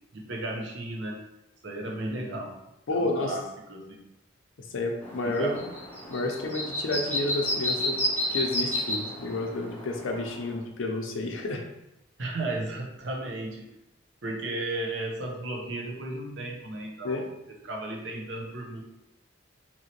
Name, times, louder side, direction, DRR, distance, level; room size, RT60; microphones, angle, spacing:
voice 1, 0.1-1.2 1.6-2.6 2.9-4.1 5.2-5.7 12.2-13.7 14.2-18.8, right 2 dB, 65° right, 0 dB, 0.7 m, -34 dB
voice 2, 2.9-3.3 4.7-5.6 6.1-8.0 8.3-11.6 17.0-17.3, left 2 dB, 80° left, 3 dB, 0.5 m, -30 dB
sound 1, 5.0-10.6, left 1 dB, 10° left, 0.5 m, -31 dB
2.9 x 2.8 x 2.8 m, 0.88 s
head